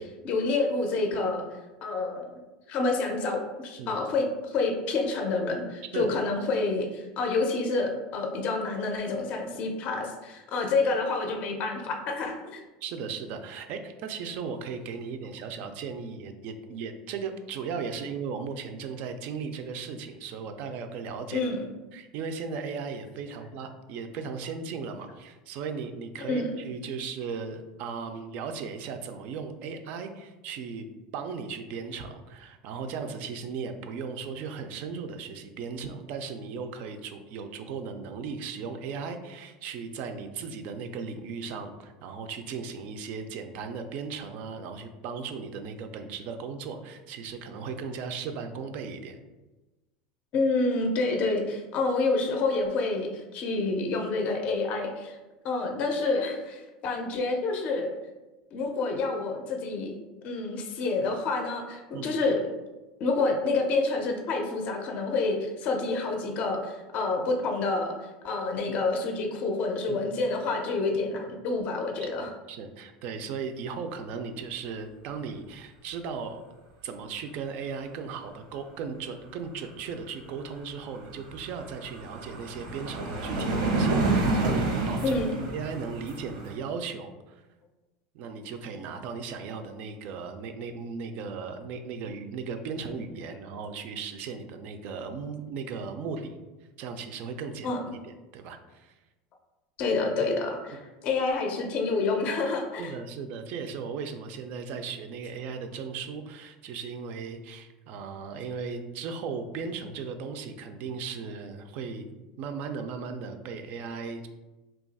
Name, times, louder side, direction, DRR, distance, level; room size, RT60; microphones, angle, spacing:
voice 1, 0.0-1.5 1.8-2.3 2.7-12.6 21.3-21.7 26.3-26.5 50.3-55.2 55.4-57.9 58.5-62.4 63.0-72.3 85.0-85.3 97.6-97.8 99.8-102.9, left 3 dB, 40° left, 3 dB, 0.4 m, -28 dB
voice 2, 12.8-21.4 21.9-30.9 31.1-49.2 61.9-62.2 69.9-70.0 72.0-72.1 72.5-76.4 76.8-85.2 85.5-87.4 88.1-96.4 96.8-98.9 102.8-114.3, right 5 dB, 55° right, 7 dB, 0.3 m, -37 dB
sound 1, 80.4-80.5 80.8-86.6, right 2 dB, 90° right, 0.8 m, -29 dB
2.8 x 2.3 x 3.9 m, 1.1 s
supercardioid pair, 145°, 3 cm